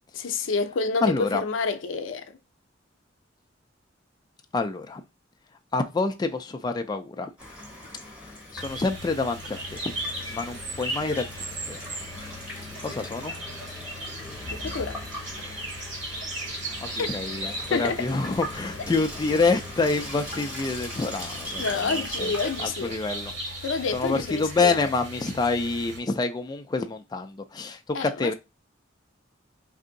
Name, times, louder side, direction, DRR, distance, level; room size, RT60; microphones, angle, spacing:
voice 1, 0.1-2.4 14.5-15.0 17.0-17.1 17.7-18.0 21.6-22.9 23.6-24.9 27.9-28.3, left 4 dB, 90° left, 0.5 m, -28 dB
voice 2, 1.0-1.4 4.5-5.0 5.7-7.3 8.5-9.9 10.3-11.2 11.7-11.8 12.8-13.3 16.8-22.3 22.6-23.3 23.9-28.3, left 3 dB, 20° left, 0.3 m, -27 dB
Water tap faucet / Sink (filling or washing), 7.4-22.7, left 1 dB, 5° right, 1.0 m, -40 dB
sound 1, 8.6-26.0, right 1 dB, 80° right, 1.8 m, -37 dB
2.7 x 2.5 x 3.8 m
head